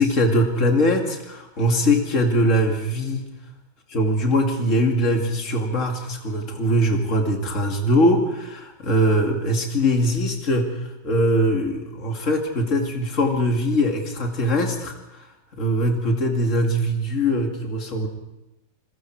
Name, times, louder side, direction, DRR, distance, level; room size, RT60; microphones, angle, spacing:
voice 1, 0.0-3.3 3.9-10.8 11.0-14.9 15.6-18.1, equal, 45° left, 2 dB, 2.8 m, -21 dB
29.0 x 21.0 x 4.7 m, 0.94 s
omnidirectional pair, 1.9 m